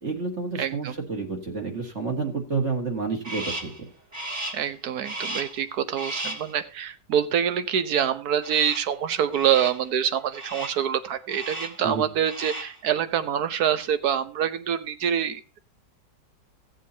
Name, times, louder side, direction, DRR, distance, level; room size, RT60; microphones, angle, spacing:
voice 1, 0.0-3.7 11.8-12.1, right 4 dB, 45° right, 2 dB, 2.2 m, -29 dB
voice 2, 0.6-0.9 4.5-15.6, right 9 dB, 65° right, 11 dB, 1.4 m, -26 dB
Crow, 3.2-3.8 4.1-4.7 5.0-5.6 6.0-6.5 8.4-9.0 9.3-9.9 10.3-10.9 11.3-11.9 12.2-12.8, right 1 dB, 25° right, 1.9 m, -35 dB
16.5 x 7.5 x 2.8 m, 0.31 s
omnidirectional pair, 1.8 m